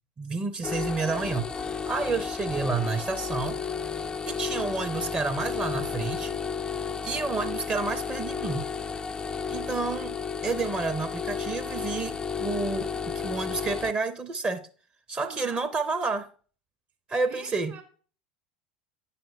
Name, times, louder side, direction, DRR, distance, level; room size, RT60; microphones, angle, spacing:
voice 1, 0.2-1.5 1.9-3.6 4.3-6.4 7.0-8.6 9.5-10.1 10.4-14.6 15.1-16.3 17.1-17.7, right 4 dB, 25° right, 0.6 m, -30 dB
sound 1, 0.6-13.9, left 6 dB, 15° left, 0.3 m, -33 dB
voice 2, 15.2-15.7 17.3-17.8, right 8 dB, 40° right, 1.6 m, -44 dB
9.0 x 5.6 x 2.6 m
figure-of-eight pair, 75°, 5 cm